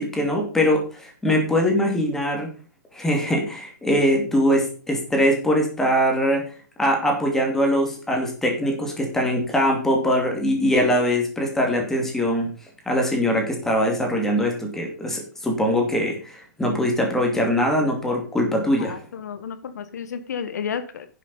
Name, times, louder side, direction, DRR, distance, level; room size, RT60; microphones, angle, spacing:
voice 1, 0.0-2.5 2.9-6.4 6.8-12.5 12.9-19.0, equal, 5° left, 1 dB, 2.7 m, -22 dB
voice 2, 18.8-21.1, left 7 dB, 65° left, 11 dB, 1.3 m, -32 dB
10.5 x 7.5 x 5.5 m, 0.39 s
hypercardioid pair, 160°, 10 cm